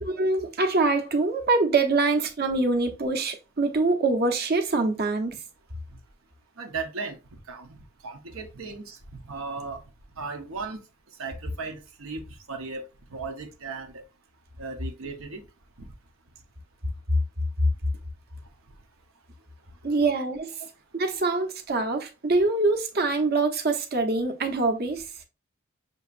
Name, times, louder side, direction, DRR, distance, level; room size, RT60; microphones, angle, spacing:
voice 1, 0.0-5.4 19.8-20.5 20.9-25.0, right 3 dB, 50° right, 0.9 m, -24 dB
voice 2, 6.6-9.8 10.2-12.8 13.1-14.0 14.6-15.5 15.8-15.9 18.7-18.8 20.6-20.7, right 4 dB, 85° right, 1.0 m, -37 dB
6.3 x 2.9 x 2.5 m
head